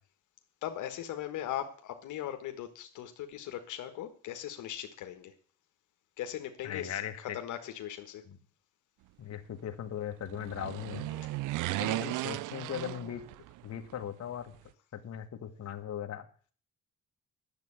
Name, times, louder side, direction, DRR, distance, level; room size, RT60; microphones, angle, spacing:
voice 1, 0.6-5.3 6.2-8.2 11.1-11.3, left 11 dB, 85° left, 6 dB, 1.5 m, -39 dB
voice 2, 6.6-7.4 8.3-8.4 9.2-11.1 11.8-13.2 13.6-14.5 14.9-16.3, left 9 dB, 55° left, 6 dB, 1.7 m, -39 dB
sound 1, 10.2-13.6 13.9-14.0, right 17 dB, 85° right, 0.5 m, -35 dB
10.5 x 7.7 x 8.6 m, 0.42 s
cardioid pair, 90°, 30 cm